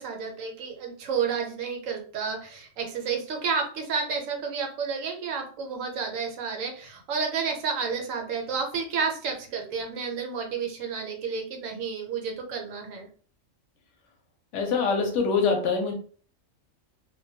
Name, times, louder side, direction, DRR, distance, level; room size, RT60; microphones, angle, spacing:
voice 1, 0.0-13.1, right 5 dB, 75° right, 3 dB, 1.0 m, -31 dB
voice 2, 14.5-15.9, left 5 dB, 70° left, 3 dB, 0.9 m, -24 dB
2.2 x 2.2 x 2.6 m, 0.44 s
omnidirectional pair, 1.4 m